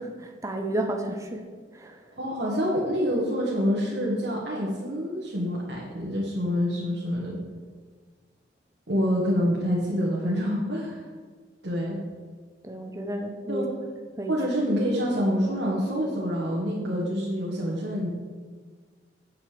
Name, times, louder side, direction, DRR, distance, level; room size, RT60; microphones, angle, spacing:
voice 1, 0.0-1.4 1.7-2.0 8.9-9.0 12.6-13.7 14.2-14.4, right 1 dB, 20° right, 4 dB, 0.8 m, -32 dB
voice 2, 2.2-7.4 8.9-11.1 11.6-12.0 13.5-13.7 14.3-18.1, equal, 80° right, -5 dB, 1.8 m, -27 dB
8.3 x 6.6 x 6.8 m, 1.5 s
head